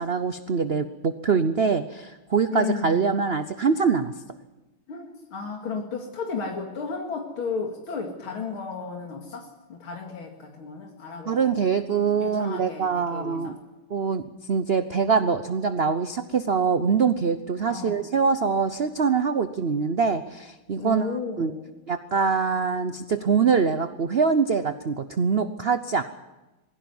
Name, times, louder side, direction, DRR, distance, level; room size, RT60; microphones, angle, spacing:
voice 1, 0.0-4.1 11.3-13.6 13.9-14.2 14.5-21.5 21.9-26.0, right 5 dB, 80° right, 10 dB, 0.5 m, -24 dB
voice 2, 2.5-3.1 4.9-11.6 12.2-13.5 17.6-18.1 20.8-21.7, left 5 dB, 80° left, 1 dB, 3.0 m, -34 dB
21.5 x 16.0 x 9.4 m, 1.1 s
omnidirectional pair, 2.2 m